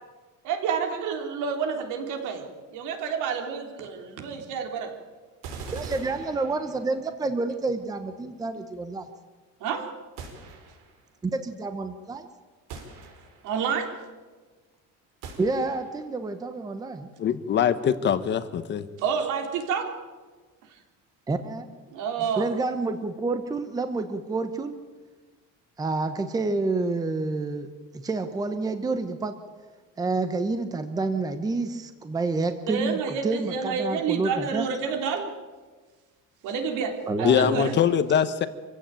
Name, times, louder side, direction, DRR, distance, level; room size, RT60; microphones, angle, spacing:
voice 1, 0.4-4.9 9.6-9.9 13.4-14.0 19.0-20.0 21.9-22.5 32.7-35.3 36.4-37.8, right 6 dB, 70° right, 4 dB, 3.6 m, -29 dB
sound 1, 5.4-7.1 10.2-11.0 12.7-13.6 15.2-16.1, right 4 dB, 90° right, 5.2 m, -42 dB
voice 2, 5.7-9.0 11.2-12.3 15.4-17.1 21.3-21.7 22.4-24.8 25.8-27.7 27.9-29.3 30.0-34.7 37.1-37.7, right 3 dB, 10° right, 9 dB, 0.9 m, -28 dB
voice 3, 17.2-18.9 37.2-38.5, left 8 dB, 35° left, 12 dB, 1.0 m, -23 dB
26.0 x 16.0 x 9.0 m, 1.4 s
cardioid pair, 180°, 32 cm